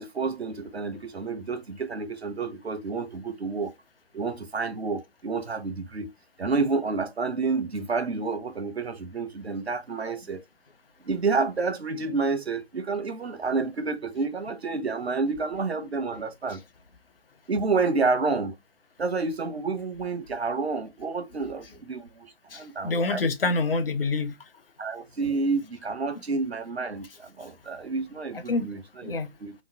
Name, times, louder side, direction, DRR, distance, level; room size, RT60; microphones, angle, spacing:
voice 1, 0.0-3.7 4.1-6.1 6.4-10.4 11.1-16.6 17.5-18.5 19.0-23.3 24.8-29.1 29.4-29.5, right 4 dB, 85° right, 0.8 m, -29 dB
voice 2, 22.5-24.4 28.3-28.7 29.0-29.3, left 3 dB, 65° left, 0.7 m, -27 dB
3.0 x 2.2 x 3.4 m
figure-of-eight pair, 150°, 31 cm